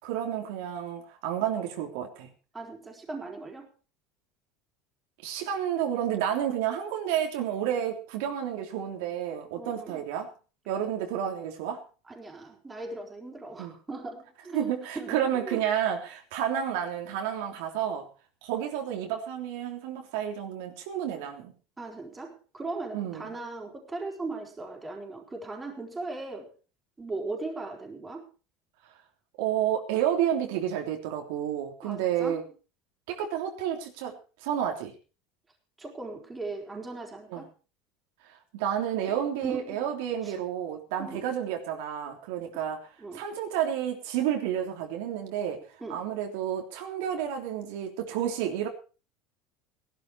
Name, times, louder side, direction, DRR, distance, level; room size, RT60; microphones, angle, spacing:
voice 1, 0.0-2.3 5.2-10.3 10.7-11.8 13.6-13.7 14.5-18.1 18.4-21.5 22.9-23.3 29.4-32.4 33.1-34.9 37.3-37.4 38.5-48.7, right 10 dB, 80° right, 3 dB, 3.2 m, -30 dB
voice 2, 2.5-3.7 9.6-10.0 12.1-15.6 21.8-26.5 27.0-28.3 31.8-32.4 35.8-37.5 39.4-39.8 40.2-40.3 41.0-41.3 43.0-43.2 45.8-46.0, right 3 dB, 15° right, 1 dB, 4.2 m, -38 dB
17.5 x 12.0 x 4.6 m, 0.35 s
supercardioid pair, 140°, 0 cm